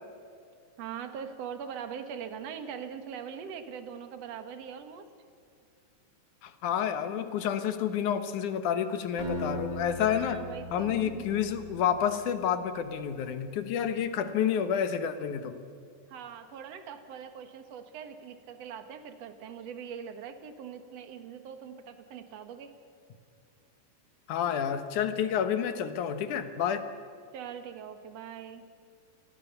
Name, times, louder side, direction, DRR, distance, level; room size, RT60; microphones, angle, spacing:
voice 1, 0.8-5.1 10.0-11.3 16.1-22.7 27.3-28.7, right 7 dB, 55° right, 8 dB, 2.1 m, -42 dB
voice 2, 6.4-10.4 10.7-15.6 24.3-26.9, left 8 dB, 65° left, 9 dB, 2.3 m, -29 dB
Acoustic guitar, 9.2-12.2, left 1 dB, 20° right, 6.0 m, -38 dB
28.0 x 19.0 x 6.9 m, 2.4 s
omnidirectional pair, 4.4 m